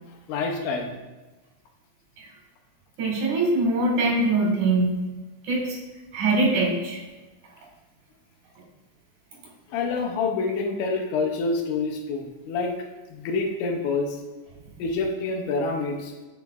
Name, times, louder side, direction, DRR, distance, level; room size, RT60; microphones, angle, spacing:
voice 1, 0.3-0.9 9.7-12.7 13.1-14.2 14.8-16.1, left 4 dB, 85° left, 3 dB, 2.3 m, -27 dB
voice 2, 3.0-5.0 5.4-5.8 6.1-7.0, right 2 dB, 70° right, -3 dB, 3.0 m, -23 dB
8.9 x 5.2 x 2.3 m, 1.2 s
omnidirectional pair, 3.5 m